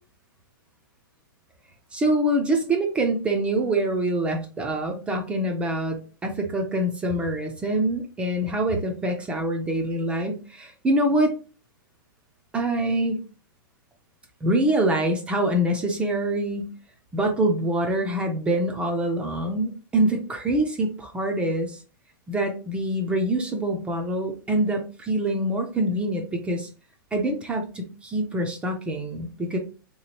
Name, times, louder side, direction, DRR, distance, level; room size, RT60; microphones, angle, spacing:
voice 1, 1.9-11.3 12.5-13.2 14.4-16.7 17.1-21.8 22.3-26.7 27.1-29.6, right 1 dB, 10° right, 2 dB, 0.3 m, -25 dB
3.3 x 2.8 x 2.9 m, 0.35 s
hypercardioid pair, 155°, 12 cm